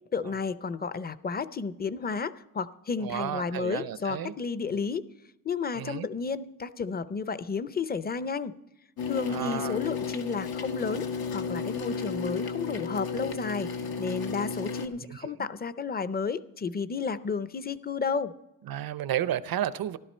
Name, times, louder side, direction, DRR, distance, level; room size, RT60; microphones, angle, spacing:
voice 1, 0.1-5.0 5.4-8.6 9.0-11.1 11.3-13.7 14.0-18.3, left 5 dB, 25° left, 0.5 m, -32 dB
voice 2, 3.0-4.3 5.8-6.1 9.3-9.8 15.1-15.3 18.7-20.0, right 11 dB, 80° right, 0.6 m, -32 dB
sound 1, 9.0-14.9, left 5 dB, 85° left, 1.3 m, -33 dB
14.0 x 12.0 x 4.4 m
wide cardioid pair, 110°, 35 cm